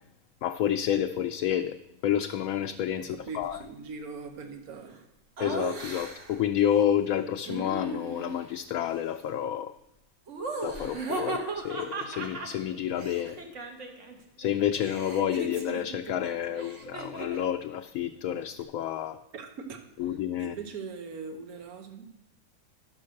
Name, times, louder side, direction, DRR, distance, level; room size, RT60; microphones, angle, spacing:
voice 1, 0.4-1.8 2.0-3.6 5.4-9.7 10.6-13.4 14.4-19.2 20.0-20.5, left 10 dB, 75° left, 5 dB, 1.0 m, -29 dB
voice 2, 3.3-5.0 19.3-22.0, right 4 dB, 80° right, 5 dB, 1.5 m, -41 dB
Laughter, 5.4-6.4 7.4-8.5 10.3-14.2 14.4-17.5, right 2 dB, 55° right, 1.5 m, -37 dB
11.5 x 6.3 x 6.4 m, 0.85 s
omnidirectional pair, 1.5 m